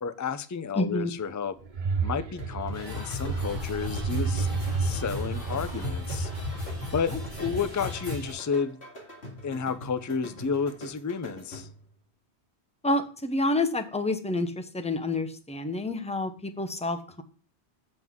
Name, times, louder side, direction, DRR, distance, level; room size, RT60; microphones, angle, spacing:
voice 1, 0.0-1.6 2.0-4.5 4.8-6.3 6.9-7.1 7.4-8.8 9.4-11.7, left 6 dB, 25° left, 12 dB, 0.3 m, -31 dB
voice 2, 0.8-1.1 12.8-17.2, left 2 dB, 5° left, 8 dB, 0.7 m, -28 dB
sound 1, 1.6-7.9, right 5 dB, 50° right, 0.8 m, -32 dB
sound 2, 2.4-11.9, left 1 dB, 70° left, 2.4 m, -44 dB
sound 3, 2.7-8.3, left 4 dB, 50° left, 4.2 m, -36 dB
7.7 x 7.6 x 3.6 m, 0.40 s
omnidirectional pair, 1.1 m